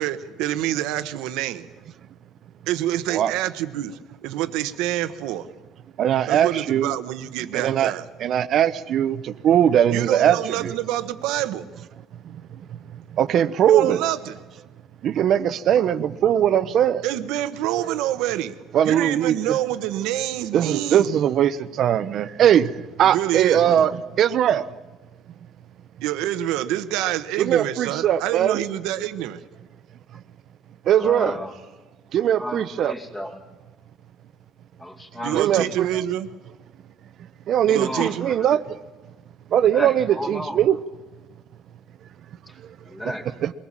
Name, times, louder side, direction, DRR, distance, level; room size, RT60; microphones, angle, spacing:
voice 1, 0.0-1.7 2.7-3.9 4.2-5.5 6.3-8.1 9.9-11.6 13.7-14.4 17.0-18.6 18.8-21.1 23.0-23.6 26.0-29.4 35.2-36.3 37.6-38.3, right 13 dB, 85° right, 12 dB, 1.0 m, -27 dB
voice 2, 6.0-6.9 7.5-7.9 8.2-10.7 12.2-12.4 12.7-12.8 13.1-14.0 15.0-17.0 18.7-19.6 20.5-24.7 27.4-28.6 30.9-31.3 32.1-32.9 35.3-35.9 37.5-38.6 39.5-40.8 43.4-43.5, right 10 dB, 50° right, 15 dB, 0.8 m, -20 dB
voice 3, 30.9-31.5 32.4-33.4 34.8-36.0 37.6-38.5 39.7-40.7 42.5-43.3, left 1 dB, 15° left, 2 dB, 2.3 m, -33 dB
22.5 x 19.0 x 7.5 m, 1.2 s
cardioid pair, 130°, 0 cm